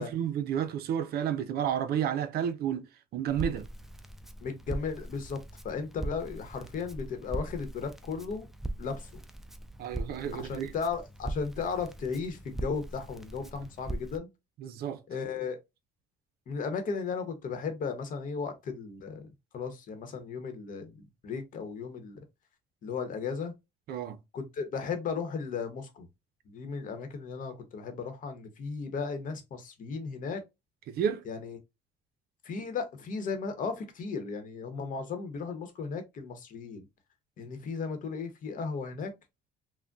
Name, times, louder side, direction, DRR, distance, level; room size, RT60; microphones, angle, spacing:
voice 1, 0.0-3.7 9.8-10.7 14.6-15.0 23.9-24.2 30.9-31.2, right 9 dB, 65° right, 0.5 m, -31 dB
Crackle, 3.3-14.2, right 1 dB, ahead, 0.3 m, -40 dB
voice 2, 4.4-5.4 5.6-8.5 8.8-9.1 10.4-14.3 15.1-15.6 16.5-22.2 22.8-23.5 24.3-26.1 26.5-30.4 31.3-31.6 32.4-36.9 37.4-39.1, left 5 dB, 50° left, 0.9 m, -35 dB
3.4 x 2.1 x 2.5 m
cardioid pair, 110°, 17 cm